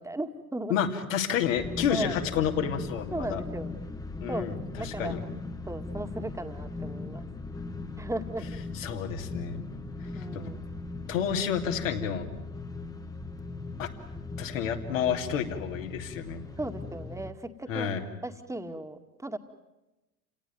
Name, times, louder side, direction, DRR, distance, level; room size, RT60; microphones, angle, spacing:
voice 1, 0.0-0.8 1.9-2.2 3.1-3.7 4.3-5.3 5.7-7.3 8.0-8.5 10.1-10.7 16.6-17.9 18.2-19.4, right 2 dB, 5° right, 7 dB, 2.1 m, -36 dB
voice 2, 0.7-3.4 4.2-5.2 8.7-9.6 10.1-10.5 11.1-12.3 13.8-13.9 14.4-16.4 17.7-18.0, left 8 dB, 65° left, 3 dB, 2.9 m, -30 dB
sound 1, 1.4-17.3, left 3 dB, 10° left, 1.5 m, -39 dB
29.5 x 18.5 x 9.6 m, 1.0 s
figure-of-eight pair, 70°, 41 cm